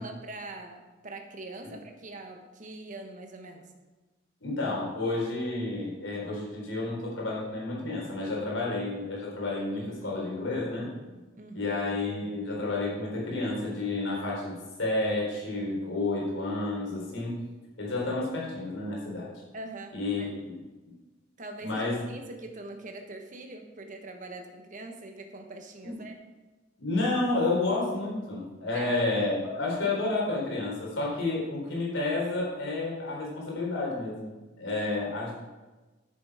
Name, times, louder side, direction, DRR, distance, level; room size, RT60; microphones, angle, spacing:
voice 1, 0.0-3.7 9.7-10.6 11.0-11.8 19.5-20.3 21.4-26.1 28.7-29.2, right 2 dB, 45° right, 4 dB, 1.3 m, -43 dB
voice 2, 4.4-10.9 11.5-14.5 14.8-17.3 17.8-19.3 19.9-20.5 21.6-22.0 25.8-26.0 26.8-34.3 34.6-35.3, left 2 dB, 80° left, -3 dB, 4.0 m, -30 dB
10.0 x 7.8 x 5.0 m, 1.2 s
head